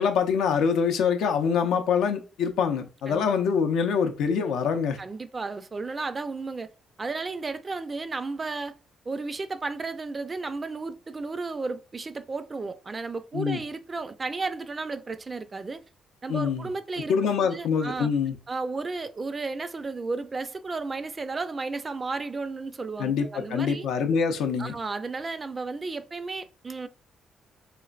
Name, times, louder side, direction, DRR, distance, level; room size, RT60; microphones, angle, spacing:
voice 1, 0.0-5.0 13.3-13.6 16.3-16.7 17.1-18.4 23.0-24.7, left 6 dB, 85° left, 0.5 m, -25 dB
voice 2, 5.0-6.7 7.0-8.7 9.1-15.8 16.2-18.1 18.5-23.9 24.6-26.9, right 3 dB, 30° right, 0.4 m, -33 dB
3.2 x 3.1 x 2.3 m
cardioid pair, 90°, 0 cm